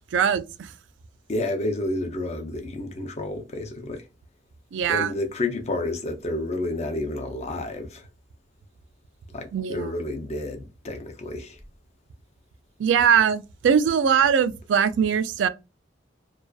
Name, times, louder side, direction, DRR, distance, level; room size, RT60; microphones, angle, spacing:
voice 1, 0.1-0.7 4.7-5.1 9.5-9.9 12.8-15.5, right 7 dB, 75° right, 0.3 m, -21 dB
voice 2, 1.3-4.0 4.9-8.1 9.3-11.6, left 2 dB, 35° left, 0.5 m, -30 dB
2.4 x 2.3 x 2.3 m
head